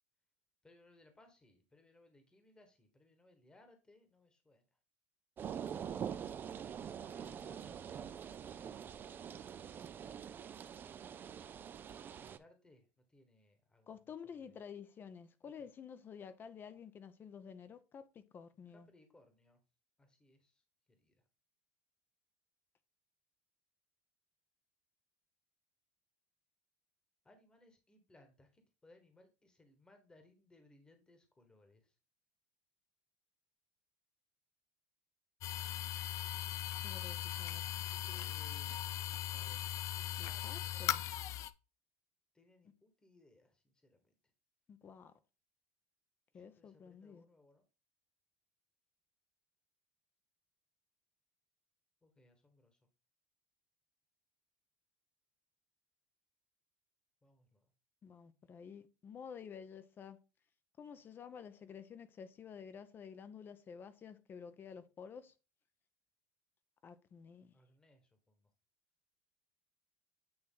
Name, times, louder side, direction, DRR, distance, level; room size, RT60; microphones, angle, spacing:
voice 1, 0.6-4.6 7.0-8.3 8.8-9.0 12.2-14.0 14.4-14.6 15.4-15.7 18.5-19.6 20.0-20.6 21.0-21.2 27.2-31.9 37.8-41.0 42.3-44.0 46.3-47.6 52.0-52.8 57.2-57.7 67.5-68.5, left 2 dB, 15° left, 1.3 m, -65 dB
sound 1, 5.4-12.4, right 8 dB, 30° right, 0.4 m, -45 dB
voice 2, 13.9-18.9 36.8-37.8 40.2-41.0 44.7-45.1 46.3-47.2 58.0-60.2 60.8-65.3 66.8-67.5, left 7 dB, 30° left, 0.7 m, -51 dB
sound 2, 35.4-41.5, left 13 dB, 50° left, 0.4 m, -39 dB
8.7 x 3.1 x 3.8 m
supercardioid pair, 115°, 7 cm